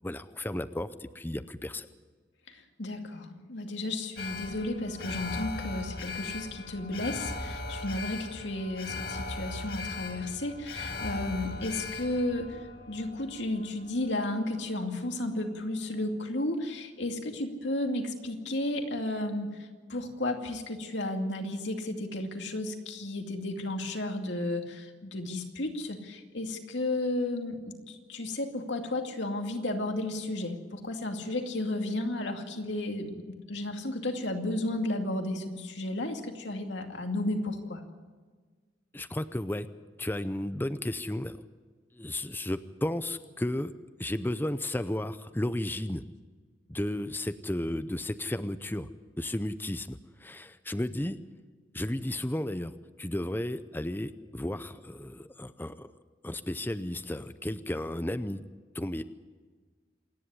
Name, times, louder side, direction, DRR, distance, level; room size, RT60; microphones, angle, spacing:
voice 1, 0.0-1.9 38.9-39.7 40.0-41.4 41.9-43.7 44.0-46.0 46.7-48.9 49.2-51.2 51.7-52.7 53.0-55.9 56.2-58.4 58.7-59.0, left 1 dB, 10° left, 12 dB, 0.6 m, -33 dB
voice 2, 2.5-12.6 12.9-37.8, left 1 dB, 75° left, 4 dB, 2.5 m, -33 dB
Alarm, 4.2-14.4 14.8-14.9, left 3 dB, 55° left, 2.1 m, -39 dB
27.0 x 11.0 x 9.7 m, 1.5 s
head